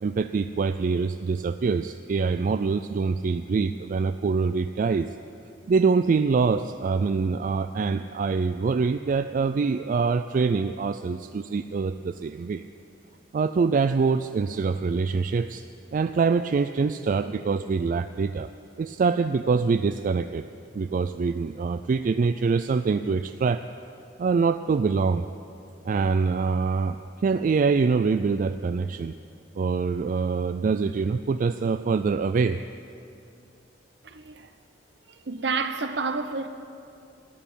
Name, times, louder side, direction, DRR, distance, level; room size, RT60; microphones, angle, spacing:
voice 1, 0.0-5.1 5.7-12.6 13.3-15.6 15.9-18.5 18.8-20.5 20.7-23.6 24.2-25.3 25.8-29.1 29.6-32.6, right 4 dB, 50° right, 0.3 m, -24 dB
sound 1, 15.3-19.0 19.5-19.6 20.0-22.1, right 2 dB, 20° right, 1.7 m, -54 dB
voice 2, 34.0-34.5 35.1-36.5, right 4 dB, 70° right, 0.9 m, -30 dB
13.5 x 9.1 x 10.0 m
head